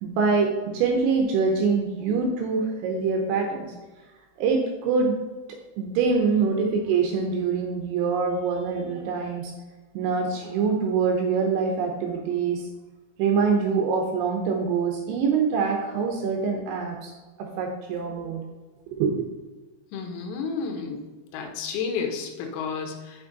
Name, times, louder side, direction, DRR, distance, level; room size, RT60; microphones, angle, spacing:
voice 1, 0.0-3.7 4.4-5.1 5.8-9.5 9.9-12.7 13.2-17.1 17.4-18.4 18.9-19.1, right 5 dB, 80° right, 2 dB, 2.8 m, -24 dB
voice 2, 19.9-21.0 21.3-23.3, left 5 dB, 85° left, 3 dB, 3.8 m, -31 dB
7.8 x 6.1 x 3.9 m, 1.3 s
omnidirectional pair, 6.0 m